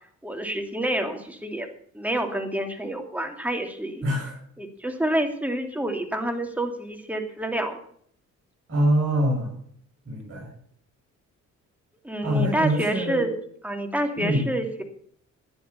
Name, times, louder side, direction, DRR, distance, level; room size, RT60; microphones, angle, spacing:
voice 1, 0.2-1.7 1.9-4.0 4.6-7.8 12.0-13.3 13.6-14.8, right 1 dB, 5° right, 4 dB, 2.7 m, -28 dB
voice 2, 4.0-4.3 8.7-9.5 10.1-10.5 12.2-13.2 14.2-14.5, equal, 45° right, -5 dB, 7.5 m, -24 dB
13.0 x 10.0 x 6.9 m, 0.64 s
cardioid pair, 90°, 30 cm